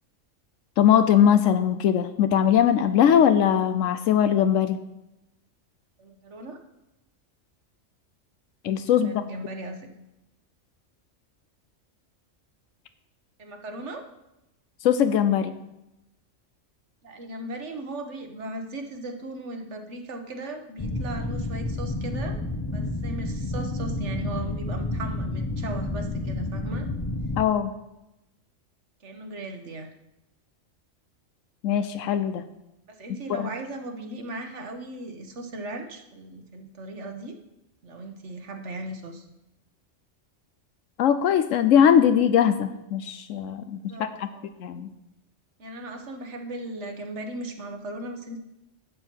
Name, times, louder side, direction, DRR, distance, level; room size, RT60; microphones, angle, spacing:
voice 1, 0.8-4.8 8.6-9.2 14.8-15.5 27.4-27.7 31.6-32.4 33.4-33.5 41.0-44.3 44.6-44.9, left 9 dB, 85° left, 10 dB, 1.0 m, -21 dB
voice 2, 6.0-6.6 8.9-9.9 13.4-14.1 17.0-22.4 22.7-26.9 29.0-29.9 32.9-37.3 37.8-39.3 43.9-44.4 45.6-48.4, right 2 dB, 65° right, 5 dB, 1.5 m, -37 dB
sound 1, 20.8-27.4, left 2 dB, 25° left, 0.6 m, -30 dB
11.5 x 7.6 x 4.5 m, 0.93 s
omnidirectional pair, 1.3 m